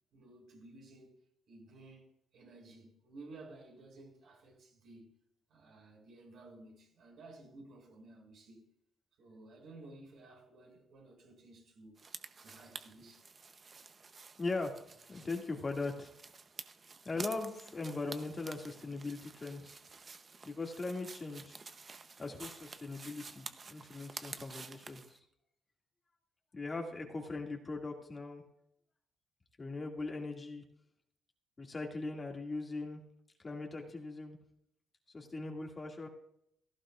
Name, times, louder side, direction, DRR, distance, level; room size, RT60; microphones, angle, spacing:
voice 1, 0.1-1.1 1.5-5.2 5.5-8.6 9.2-12.0 12.4-13.3, right 2 dB, 70° right, 5.7 m, -55 dB
sound 1, 12.0-25.2, right 4 dB, 40° right, 0.8 m, -50 dB
voice 2, 14.4-14.8 15.1-16.1 17.0-19.8 20.4-21.6 22.2-25.2 26.5-28.4 29.6-30.6 31.6-33.0 33.4-34.4 35.1-36.1, left 3 dB, 30° left, 2.3 m, -40 dB
17.0 x 14.5 x 2.5 m
cardioid pair, 80°, 0 cm